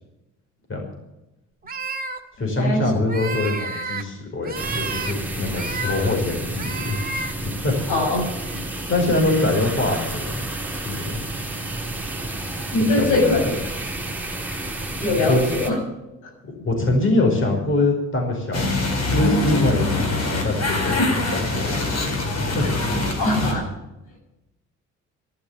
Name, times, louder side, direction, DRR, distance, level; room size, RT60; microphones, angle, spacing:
sound 1, 1.6-2.2 3.0-4.0 4.4-5.1 5.5-6.1 6.5-7.3 8.2-8.6 9.0-9.4, right 3 dB, 30° right, 1.8 m, -31 dB
voice 1, 2.4-7.0 7.4-7.8 8.9-10.4 10.8-11.2 13.0-13.5 15.2-15.5 16.6-18.7 19.1-21.8 22.2-22.6, left 2 dB, 40° left, 1 dB, 5.1 m, -23 dB
sound 2, 4.5-15.7, right 2 dB, 5° right, 4.1 m, -30 dB
voice 2, 7.9-8.2 8.5-8.6 12.7-13.5 15.0-15.8 23.2-23.6, left 2 dB, 90° left, 1 dB, 6.9 m, -21 dB
sound 3, 18.5-23.5, left 2 dB, 60° left, 4.6 m, -24 dB
12.0 x 12.0 x 8.4 m, 0.96 s
cardioid pair, 90°, 30 cm